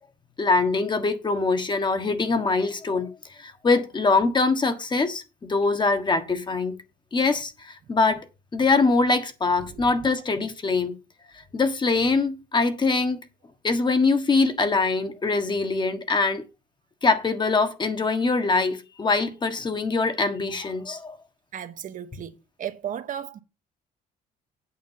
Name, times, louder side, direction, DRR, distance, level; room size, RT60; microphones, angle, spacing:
voice 1, 0.4-6.7 7.1-10.9 11.3-13.2 13.6-16.5 17.0-21.2, left 3 dB, 25° left, 1.4 m, -23 dB
voice 2, 21.5-22.3 22.6-23.4, right 9 dB, 50° right, 1.2 m, -34 dB
8.8 x 6.5 x 5.7 m
cardioid pair, 110°, 17 cm